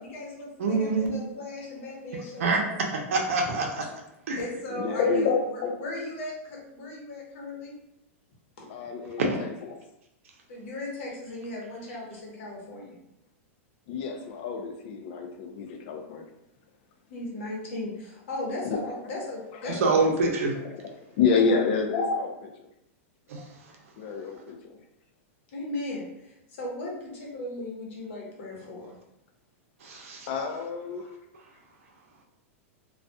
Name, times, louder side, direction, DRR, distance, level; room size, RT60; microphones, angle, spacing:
voice 1, 0.0-2.8 3.4-3.5 4.4-7.8 8.6-8.7 10.5-12.9 17.1-20.1 21.3-21.6 25.5-29.0, left 1 dB, 65° left, -3 dB, 0.9 m, -37 dB
voice 2, 0.6-1.1 2.4-2.6 2.9-3.7 4.3-4.4 9.2-9.4 19.8-20.5 23.3-23.5 29.8-30.3, right 3 dB, 80° right, 1 dB, 0.6 m, -25 dB
voice 3, 4.7-5.7 8.7-9.5 13.9-16.3 18.6-18.8 19.6-19.8 20.6-20.8 21.2-22.7 24.0-24.8 30.3-31.1, left 5 dB, 50° left, 4 dB, 0.4 m, -28 dB
2.6 x 2.3 x 2.2 m, 0.84 s
supercardioid pair, 155°, 7 cm